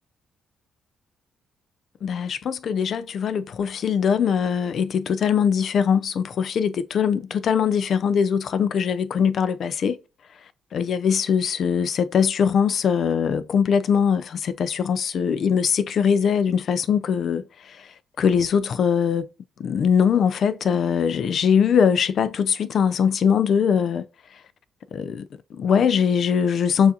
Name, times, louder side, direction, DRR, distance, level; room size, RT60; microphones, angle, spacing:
voice 1, 2.0-10.0 10.7-17.9 18.2-19.3 19.6-24.0 24.9-26.9, left 7 dB, 60° left, 0.4 m, -21 dB
6.8 x 2.5 x 2.8 m
cardioid pair, 90°, 0 cm